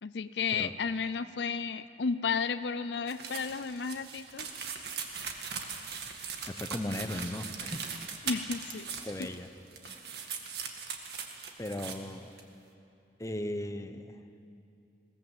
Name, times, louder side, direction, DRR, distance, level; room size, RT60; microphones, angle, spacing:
voice 1, 0.0-4.5 8.2-8.9 9.2-9.3, left 5 dB, 75° left, 13 dB, 0.5 m, -33 dB
sound 1, 3.1-9.5 9.7-12.0 12.4-12.5, right 6 dB, 65° right, 1.9 m, -40 dB
voice 2, 6.4-7.9 9.0-9.5 11.6-12.3 13.2-14.2, left 1 dB, 20° left, 8 dB, 0.9 m, -37 dB
21.0 x 18.0 x 7.9 m, 2.8 s
head